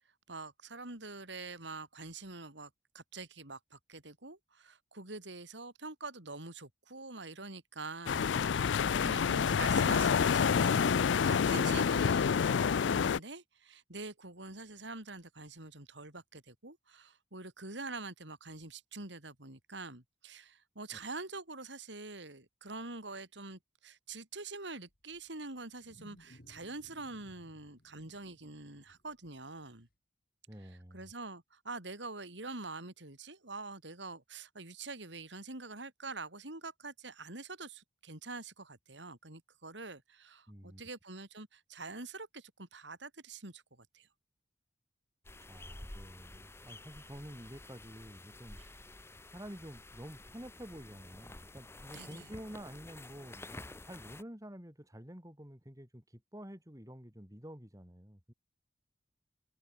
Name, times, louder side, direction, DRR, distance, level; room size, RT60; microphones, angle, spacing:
voice 1, 0.3-2.7 2.9-11.0 11.2-29.9 30.9-43.6 43.9-44.1 48.6-48.7 51.9-52.3, right 3 dB, 75° right, 4.8 m, -45 dB
sound 1, 8.1-13.2, left 6 dB, 80° left, 0.4 m, -28 dB
Wild animals, 24.9-29.9, equal, 50° left, 3.4 m, -61 dB
voice 2, 30.5-31.1 40.5-40.8 45.5-48.6 49.3-58.3, equal, 20° right, 4.9 m, -49 dB
sound 2, 45.2-54.2, left 2 dB, 15° left, 1.1 m, -51 dB
head